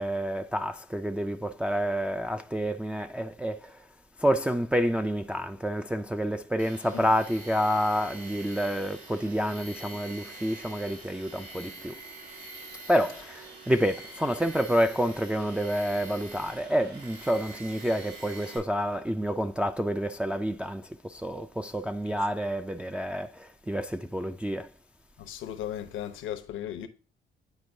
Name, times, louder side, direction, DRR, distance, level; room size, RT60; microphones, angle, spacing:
voice 1, 0.0-3.9 4.2-12.0 12.9-24.7, equal, 5° right, 0.3 m, -28 dB
Tools, 6.6-18.6, right 2 dB, 70° right, 3.7 m, -45 dB
voice 2, 25.2-26.9, left 10 dB, 80° left, 0.9 m, -36 dB
9.9 x 4.3 x 2.6 m
cardioid pair, 90°, 20 cm